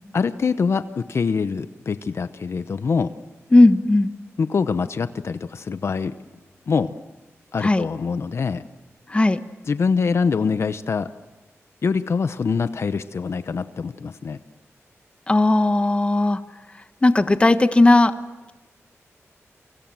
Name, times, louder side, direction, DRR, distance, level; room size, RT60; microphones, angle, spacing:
voice 1, 0.1-3.1 4.4-6.1 6.7-6.9 7.5-8.6 9.7-11.1 11.8-14.4, left 5 dB, 60° left, 11 dB, 0.9 m, -24 dB
voice 2, 3.5-4.1 7.6-7.8 9.1-9.4 15.3-16.4 17.0-18.1, left 2 dB, 20° left, 10 dB, 1.2 m, -16 dB
28.5 x 24.5 x 7.7 m, 1.1 s
wide cardioid pair, 120°, 5 cm